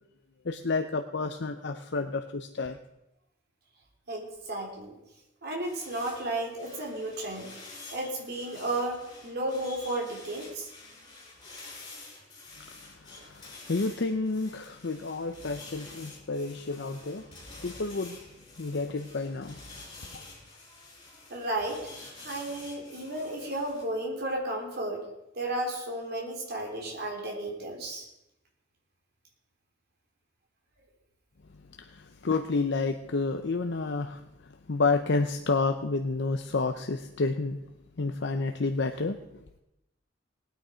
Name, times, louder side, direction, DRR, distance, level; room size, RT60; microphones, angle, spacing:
voice 1, 0.4-2.8 13.1-17.3 17.6-18.2 18.6-19.6 31.8-34.2 34.7-37.6 38.0-39.2, left 3 dB, 65° left, 7 dB, 0.7 m, -30 dB
voice 2, 4.1-5.0 5.4-7.5 7.9-10.7 21.3-21.8 22.1-25.0 25.3-28.1, right 1 dB, 55° right, 0 dB, 3.5 m, -33 dB
sound 1, 5.6-23.8, left 3 dB, 25° left, 4.8 m, -49 dB
19.0 x 9.3 x 5.1 m, 0.89 s
head